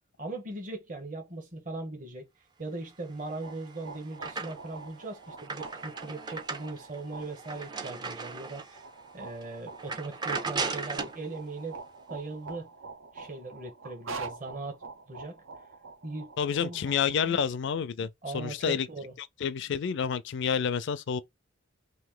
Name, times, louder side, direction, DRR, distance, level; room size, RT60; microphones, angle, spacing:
voice 1, 0.2-2.3 2.6-8.8 9.1-11.8 12.1-12.7 13.1-14.8 15.1-15.4 16.0-16.3 16.6-16.8 17.2-17.4 18.2-19.1, right 2 dB, 40° right, 1.0 m, -39 dB
sound 1, 3.2-17.3, right 4 dB, 85° right, 0.8 m, -46 dB
sound 2, 3.3-4.8 5.2-8.8 9.3-9.4 9.8-11.2, right 4 dB, 20° right, 0.4 m, -37 dB
voice 2, 16.4-18.9 19.2-21.2, left 7 dB, 60° left, 0.4 m, -29 dB
2.9 x 2.6 x 3.7 m
head